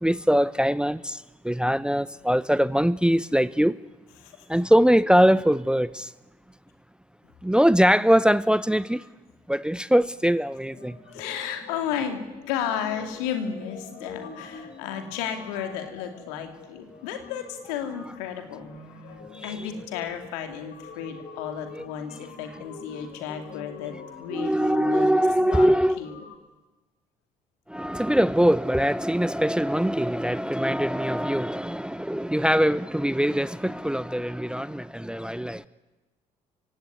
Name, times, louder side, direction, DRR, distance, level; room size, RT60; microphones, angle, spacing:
voice 1, 0.0-3.8 4.5-6.1 7.4-9.0 9.5-11.0 19.3-19.7 21.7-21.8 24.3-26.0 27.7-35.7, equal, 5° right, 0.8 m, -22 dB
sound 1, 10.7-26.4, left 5 dB, 50° left, 3.9 m, -45 dB
voice 2, 11.1-25.1 25.4-26.2, left 8 dB, 75° left, 2.7 m, -33 dB
29.5 x 17.0 x 9.7 m
figure-of-eight pair, 50°, 20 cm